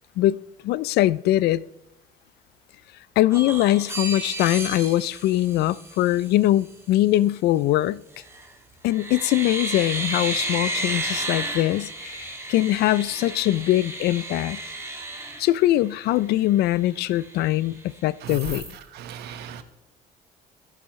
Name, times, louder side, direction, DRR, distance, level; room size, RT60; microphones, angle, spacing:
voice 1, 0.6-1.6 3.2-8.0 8.8-14.6 15.4-18.7, left 15 dB, 75° left, 0.4 m, -22 dB
sound 1, 3.3-6.3 8.1-8.5 8.9-16.1 16.6-16.7 17.0-17.8 18.3-18.8, right 2 dB, 15° right, 2.2 m, -33 dB
voice 2, 18.2-18.6 18.9-19.6, right 8 dB, 75° right, 1.3 m, -36 dB
23.0 x 8.4 x 3.2 m
cardioid pair, 110°, 17 cm